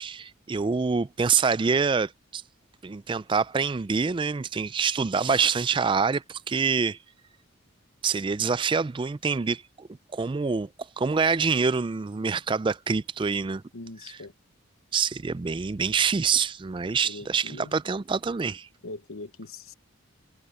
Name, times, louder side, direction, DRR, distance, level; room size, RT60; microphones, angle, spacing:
voice 1, 0.0-2.4 2.8-7.0 8.0-10.7 11.0-13.6 14.1-14.2 14.9-18.7, right 5 dB, 25° right, 0.3 m, -26 dB
voice 2, 13.7-14.3 17.0-17.7 18.8-19.7, left 2 dB, 75° left, 1.0 m, -41 dB
head